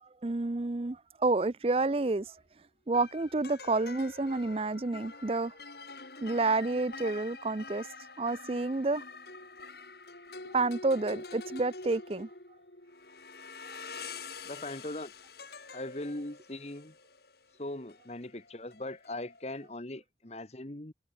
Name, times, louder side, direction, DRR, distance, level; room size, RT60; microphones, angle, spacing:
voice 1, 0.0-2.4 2.9-5.5 6.2-7.9 8.2-9.0 10.5-12.3, right 3 dB, 30° right, 0.5 m, -29 dB
sound 1, 1.8-2.0 2.9-19.7, left 3 dB, 55° left, 4.6 m, -46 dB
voice 2, 14.4-15.1 15.7-16.9 17.6-20.9, left 1 dB, 35° left, 1.4 m, -40 dB
head